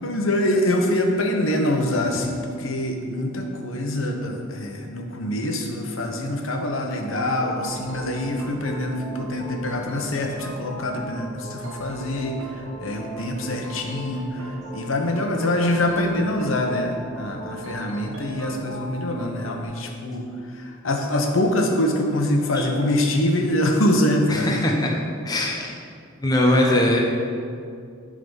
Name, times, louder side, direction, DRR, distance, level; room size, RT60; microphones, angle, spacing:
voice 1, 0.0-20.3 20.5-24.6 26.7-26.8, left 1 dB, 75° left, 2 dB, 1.0 m, -24 dB
sound 1, 7.0-19.6, right 1 dB, 80° right, 1.2 m, -38 dB
voice 2, 24.3-24.9 25.2-25.7 26.2-27.0, left 1 dB, 20° left, -1 dB, 0.8 m, -21 dB
11.0 x 3.8 x 5.5 m, 2.3 s
head